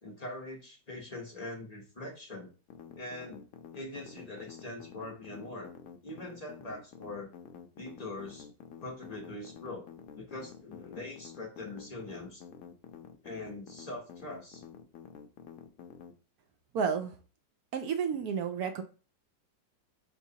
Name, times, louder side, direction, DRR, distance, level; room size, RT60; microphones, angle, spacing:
voice 1, 0.0-2.5 3.0-3.4 3.7-5.7 6.0-7.3 7.7-8.5 8.8-12.4 13.2-14.6, left 2 dB, 35° left, -2 dB, 0.6 m, -42 dB
sound 1, 2.7-16.1, left 7 dB, 65° left, 0.9 m, -49 dB
voice 2, 16.7-17.2 17.7-18.8, right 6 dB, 70° right, 6 dB, 0.9 m, -31 dB
6.0 x 3.0 x 2.7 m, 0.35 s
omnidirectional pair, 1.9 m